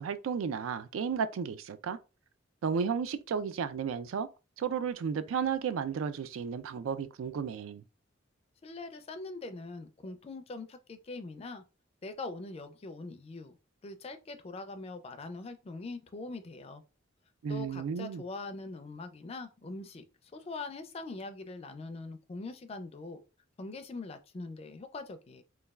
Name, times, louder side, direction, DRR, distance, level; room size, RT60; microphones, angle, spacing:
voice 1, 0.0-2.0 2.6-4.3 4.6-7.8 17.4-18.2, right 6 dB, 85° right, 0.3 m, -33 dB
voice 2, 8.6-11.6 12.0-13.5 13.8-16.8 17.5-20.0 20.3-23.2 23.6-25.4, left 3 dB, 30° left, 0.4 m, -42 dB
3.1 x 2.2 x 2.3 m
head